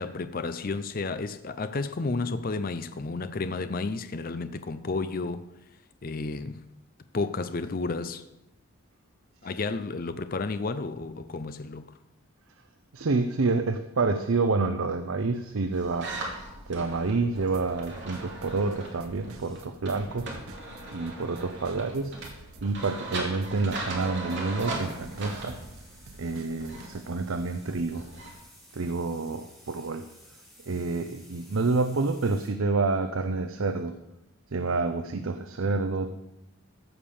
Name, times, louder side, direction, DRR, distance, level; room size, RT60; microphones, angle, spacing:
voice 1, 0.0-5.5 6.0-6.6 7.1-8.2 9.4-11.9, left 3 dB, 40° left, 0.5 m, -32 dB
voice 2, 12.9-16.1 16.7-20.3 20.9-22.2 22.6-25.6 26.2-28.1 28.7-30.0 30.6-33.9 34.5-36.1, right 3 dB, 70° right, 0.6 m, -28 dB
sound 1, 15.7-28.3, right 2 dB, 55° right, 2.6 m, -39 dB
sound 2, 16.2-16.7 18.4-19.8 20.1-20.4 22.0-24.2 24.6-32.5, equal, ahead, 2.7 m, -57 dB
sound 3, 17.5-18.8 19.0-26.9, right 3 dB, 85° right, 1.1 m, -49 dB
14.5 x 5.1 x 7.0 m
head